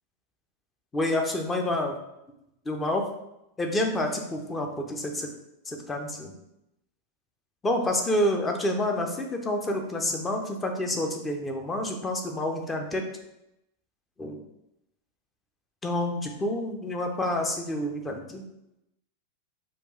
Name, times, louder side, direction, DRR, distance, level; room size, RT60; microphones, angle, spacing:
voice 1, 0.9-2.0 2.7-3.0 3.6-5.3 5.7-6.3 7.6-13.0 14.2-14.4 15.8-18.4, left 1 dB, 15° left, 3 dB, 0.6 m, -28 dB
4.3 x 2.4 x 3.1 m, 0.85 s
figure-of-eight pair, 90°, 0 cm